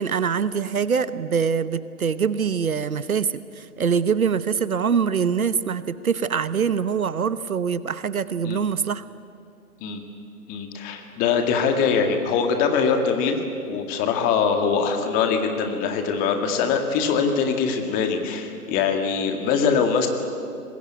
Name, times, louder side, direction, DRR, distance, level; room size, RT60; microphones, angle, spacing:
voice 1, 0.0-9.0, right 6 dB, 65° right, 15 dB, 1.0 m, -24 dB
voice 2, 10.5-13.4 13.7-20.1, left 6 dB, 20° left, 5 dB, 1.9 m, -23 dB
24.5 x 20.5 x 9.3 m, 2.5 s
figure-of-eight pair, 135°, 45 cm